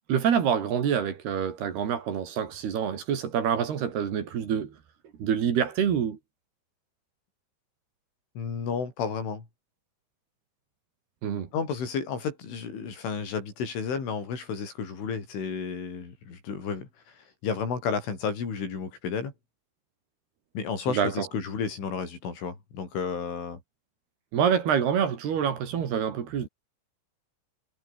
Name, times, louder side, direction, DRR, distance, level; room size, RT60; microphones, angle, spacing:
voice 1, 0.1-4.7 5.2-6.2 11.2-11.5 20.9-21.3 24.3-26.5, right 8 dB, 60° right, 4.6 m, -26 dB
voice 2, 8.4-9.5 11.5-19.3 20.6-23.6, left 6 dB, 85° left, 8.7 m, -32 dB
omnidirectional pair, 5.4 m